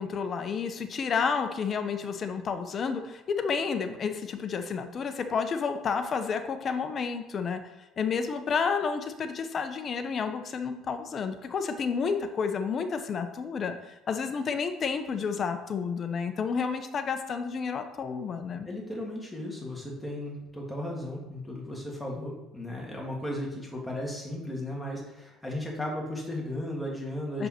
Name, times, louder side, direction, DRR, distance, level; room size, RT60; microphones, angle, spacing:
voice 1, 0.0-7.6 8.0-18.7 27.4-27.5, left 5 dB, 35° left, 8 dB, 0.7 m, -30 dB
voice 2, 18.7-27.5, left 1 dB, 5° left, -2 dB, 1.9 m, -35 dB
6.7 x 5.3 x 4.4 m, 1.0 s
cardioid pair, 135°, 0 cm